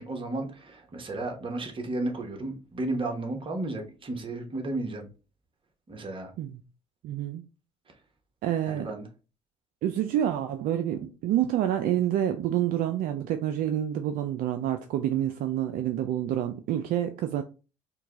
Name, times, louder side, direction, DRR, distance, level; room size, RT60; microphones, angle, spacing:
voice 1, 0.0-5.1 5.9-6.3 8.7-9.1, right 2 dB, 30° right, 1.1 m, -33 dB
voice 2, 7.0-7.5 8.4-8.9 9.8-17.4, right 11 dB, 60° right, 0.4 m, -28 dB
4.5 x 2.2 x 3.0 m
hypercardioid pair, 65°, 16 cm